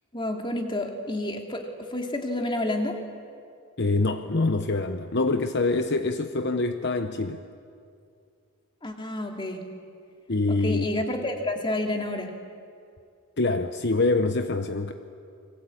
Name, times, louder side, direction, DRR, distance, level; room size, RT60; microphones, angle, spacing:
voice 1, 0.1-3.0 8.8-9.6 10.5-12.3, left 1 dB, 20° left, 2 dB, 2.7 m, -29 dB
voice 2, 3.8-7.4 10.3-10.9 13.4-14.9, left 3 dB, 50° left, 7 dB, 1.0 m, -25 dB
29.5 x 23.0 x 8.6 m, 2.4 s
head